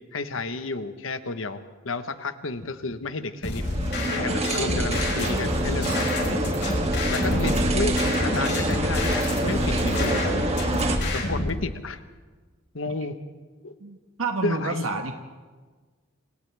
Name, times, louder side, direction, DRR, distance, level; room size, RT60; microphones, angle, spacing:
voice 1, 0.1-3.6 4.0-6.1 7.1-8.0 8.2-10.3 11.1-12.0 12.7-13.2 13.6-13.7 14.4-14.9, left 3 dB, 75° left, 10 dB, 1.2 m, -31 dB
sound 1, 3.4-11.5, left 1 dB, 55° left, 5.3 m, -28 dB
sound 2, 3.6-11.0, right 1 dB, 30° right, 2.4 m, -27 dB
sound 3, 4.1-10.8, equal, 50° right, 3.5 m, -34 dB
voice 2, 7.2-7.6 12.9-13.0 13.8-15.1, right 3 dB, 90° right, 4 dB, 1.4 m, -30 dB
28.5 x 27.5 x 3.5 m, 1.4 s
head